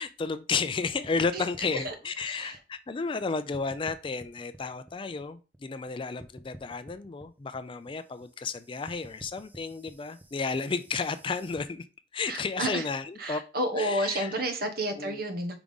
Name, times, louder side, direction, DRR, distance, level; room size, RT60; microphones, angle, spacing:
voice 1, 0.0-11.9 12.1-13.4 13.7-14.4 15.0-15.2, left 4 dB, 30° left, 0.4 m, -32 dB
sound 1, 0.9-3.2 3.5-5.9 6.2-11.6, right 1 dB, 10° right, 0.6 m, -50 dB
voice 2, 2.2-2.6 12.3-12.8 13.2-15.6, right 1 dB, 55° right, 1.1 m, -31 dB
4.9 x 3.6 x 5.4 m
head